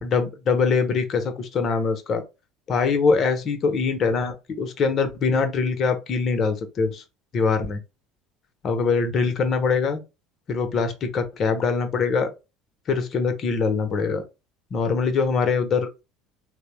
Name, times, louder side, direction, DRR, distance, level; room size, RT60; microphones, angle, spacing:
voice 1, 0.0-2.2 2.7-7.0 7.3-7.8 8.6-10.0 10.5-12.3 12.9-14.2 14.7-16.0, left 5 dB, 45° left, 0.7 m, -23 dB
3.1 x 2.0 x 3.0 m
hypercardioid pair, 70°, 0 cm